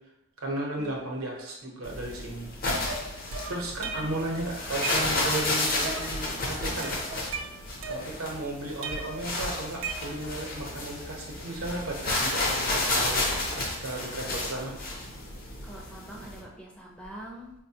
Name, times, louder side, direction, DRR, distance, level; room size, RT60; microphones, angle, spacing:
voice 1, 0.4-2.5 3.5-7.4 7.9-14.7, right 1 dB, 90° right, -1 dB, 0.8 m, -35 dB
sound 1, 1.8-16.4, left 2 dB, 45° left, 0.6 m, -32 dB
sound 2, 2.9-4.3 4.6-5.4 5.8-6.3 6.6-8.4 8.8-10.4, right 4 dB, 70° right, 0.4 m, -37 dB
voice 2, 15.6-17.5, right 1 dB, 5° left, -2 dB, 0.4 m, -45 dB
4.0 x 2.1 x 2.8 m, 0.86 s
head